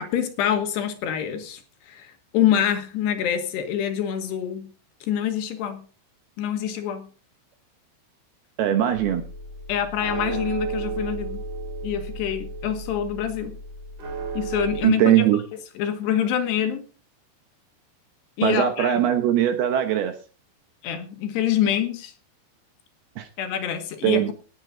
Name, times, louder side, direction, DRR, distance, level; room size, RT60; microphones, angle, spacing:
voice 1, 0.0-4.7 5.0-5.9 6.4-7.1 9.7-11.4 11.8-13.6 14.3-16.8 18.4-19.0 20.8-22.1 23.4-24.3, left 9 dB, 70° left, 7 dB, 3.2 m, -26 dB
voice 2, 8.6-9.2 14.8-15.4 18.4-20.1 23.2-23.3 24.0-24.3, right 11 dB, 70° right, 8 dB, 2.6 m, -20 dB
sound 1, 8.9-14.8, right 4 dB, 55° right, 4.7 m, -33 dB
18.0 x 8.3 x 3.9 m, 0.36 s
omnidirectional pair, 5.4 m